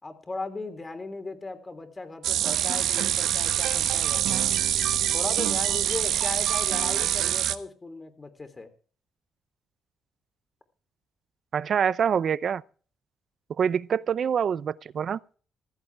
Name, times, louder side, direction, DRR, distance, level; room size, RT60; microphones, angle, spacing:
voice 1, 0.0-4.4 5.1-8.7, left 3 dB, 25° left, 3.4 m, -37 dB
sound 1, 2.2-7.6, right 11 dB, 80° right, 1.2 m, -25 dB
voice 2, 11.5-12.6 13.6-15.2, right 7 dB, 55° right, 0.7 m, -25 dB
15.5 x 14.0 x 3.5 m
cardioid pair, 90°, 0 cm